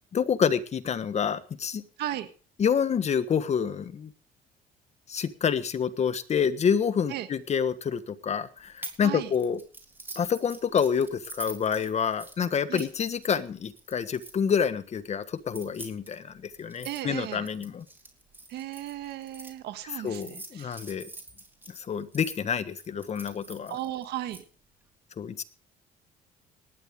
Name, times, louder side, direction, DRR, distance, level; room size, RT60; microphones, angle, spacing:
voice 1, 0.1-1.8 2.6-4.1 5.1-9.6 10.1-17.8 20.0-21.1 21.8-23.8 25.2-25.4, left 7 dB, 40° left, 12 dB, 1.4 m, -28 dB
sound 1, 8.8-9.0 9.3-14.6 15.4-19.5 20.1-22.4 22.8-24.4, right 1 dB, 10° right, 3.6 m, -45 dB
voice 2, 16.8-17.5 18.5-20.8 23.7-24.4, right 13 dB, 75° right, 9 dB, 1.6 m, -35 dB
18.5 x 12.0 x 3.7 m, 0.37 s
cardioid pair, 110°, 17 cm